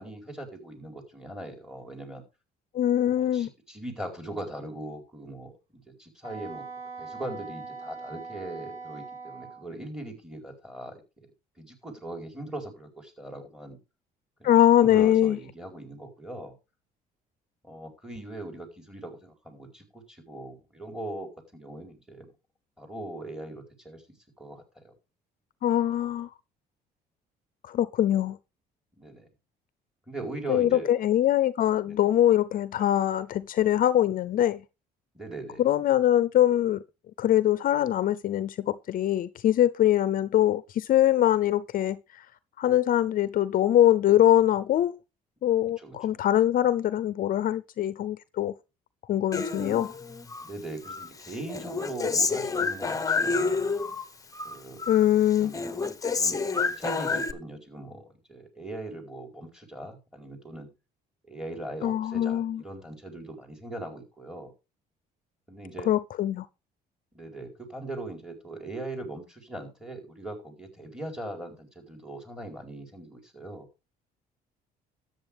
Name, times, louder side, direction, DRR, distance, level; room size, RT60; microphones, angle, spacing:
voice 1, 0.0-2.2 3.2-6.6 7.0-11.3 11.6-13.8 14.4-14.5 14.8-16.5 17.6-22.3 22.8-24.0 24.4-24.9 29.0-29.3 30.1-30.9 31.8-32.1 35.1-35.6 45.8-46.2 50.4-53.7 54.4-55.1 55.4-55.5 56.1-60.7 61.3-64.5 65.5-65.9 67.1-73.7, right 1 dB, 5° right, 4.6 m, -40 dB
voice 2, 2.7-3.5 14.4-15.4 25.6-26.3 27.6-28.4 30.5-34.6 35.6-36.8 37.2-42.2 42.6-45.0 45.4-48.5 49.1-49.9 54.9-55.5 61.8-62.6 65.9-66.5, left 12 dB, 55° left, 0.6 m, -23 dB
Wind instrument woodwind instrument, 6.2-9.7, right 4 dB, 20° right, 7.7 m, -41 dB
Human voice, 49.3-50.5 50.8-54.0 54.3-55.1 55.3-57.3, left 4 dB, 20° left, 1.1 m, -29 dB
13.0 x 8.6 x 3.5 m
cardioid pair, 110°, 17 cm